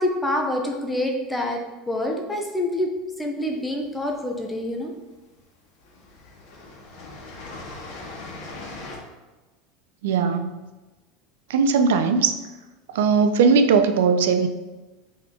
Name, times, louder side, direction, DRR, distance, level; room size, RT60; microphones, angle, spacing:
voice 1, 0.0-1.6 1.9-2.9 3.2-4.9, left 1 dB, 10° left, 1 dB, 0.6 m, -26 dB
sound 1, 3.6-4.4 5.3-5.5 5.8-9.0, left 2 dB, 60° left, 1.3 m, -40 dB
voice 2, 10.0-10.7 11.5-12.3 12.9-14.5, right 5 dB, 90° right, 8 dB, 0.4 m, -19 dB
3.8 x 3.8 x 3.6 m, 1.2 s
supercardioid pair, 145°, 0 cm